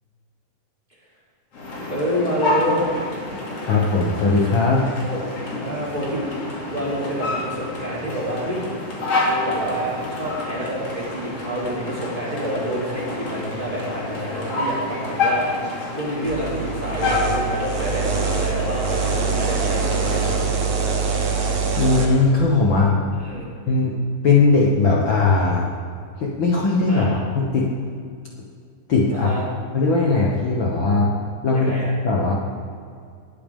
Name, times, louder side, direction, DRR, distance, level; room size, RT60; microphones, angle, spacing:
sound 1, 1.5-20.4, left 2 dB, 45° left, 3.5 m, -28 dB
voice 1, 1.9-2.9 5.0-5.2 5.6-6.3 6.7-8.6 9.2-20.2 23.1-23.5 26.9-27.2 29.1-29.4 31.5-31.9, equal, 15° right, -6 dB, 3.1 m, -28 dB
voice 2, 3.6-4.8 21.8-23.0 23.7-24.0 24.2-25.7 26.2-27.7 28.9-29.5 29.7-31.1 31.4-31.7 32.0-32.3, left 3 dB, 75° left, -3 dB, 1.1 m, -19 dB
sound 2, 16.3-22.1, right 5 dB, 55° right, 2.3 m, -24 dB
19.5 x 10.5 x 3.7 m, 2.3 s
omnidirectional pair, 4.1 m